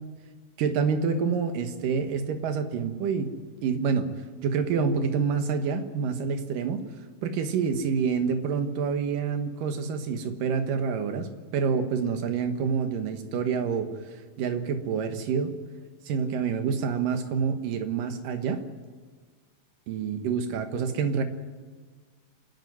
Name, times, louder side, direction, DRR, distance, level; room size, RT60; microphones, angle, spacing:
voice 1, 0.6-3.3 3.6-4.1 4.4-6.8 7.2-13.9 14.4-15.6 16.1-18.6 19.9-21.2, right 6 dB, 80° right, 7 dB, 3.0 m, -27 dB
26.5 x 10.5 x 9.5 m, 1.5 s
omnidirectional pair, 3.9 m